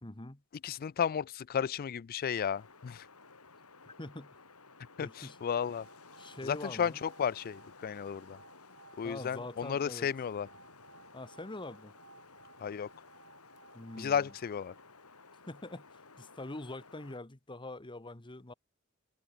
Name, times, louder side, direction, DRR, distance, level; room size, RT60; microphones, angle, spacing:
voice 1, 0.0-0.4 3.8-4.4 5.0-5.4 6.2-7.0 9.0-10.1 11.1-11.9 13.7-14.3 15.5-18.5, left 2 dB, 20° left, 1.3 m, -44 dB
voice 2, 0.6-3.1 5.0-5.9 6.4-8.4 9.0-10.5 12.6-12.9 14.0-14.7, left 7 dB, 40° left, 0.3 m, -33 dB
Wind, 2.3-17.2, left 4 dB, 90° left, 6.4 m, -56 dB
sound 1, 5.2-15.4, right 4 dB, 55° right, 8.0 m, -60 dB
head